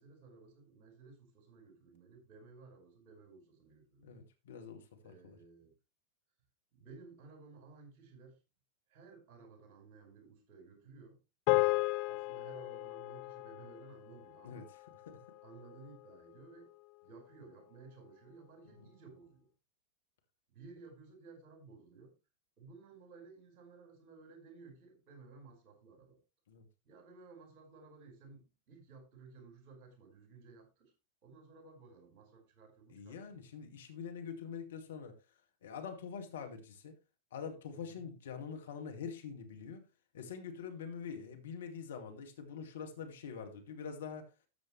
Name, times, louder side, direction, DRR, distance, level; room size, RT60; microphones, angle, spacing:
voice 1, 0.0-4.3 5.0-5.7 6.7-8.4 8.9-11.2 12.0-14.7 15.4-16.7 17.0-19.5 20.5-22.1 22.6-26.2 26.8-30.9 31.2-33.5 37.7-38.1, right 4 dB, 40° right, 5.1 m, -56 dB
voice 2, 4.0-5.4 11.5-11.8 14.4-14.8 15.1-15.2 26.5-26.7 32.9-35.2 35.6-37.0 37.3-39.9 40.1-44.3, left 6 dB, 60° left, 2.0 m, -45 dB
sound 1, 11.5-16.0, left 23 dB, 45° left, 0.7 m, -35 dB
13.0 x 7.7 x 3.2 m
figure-of-eight pair, 90°, 0 cm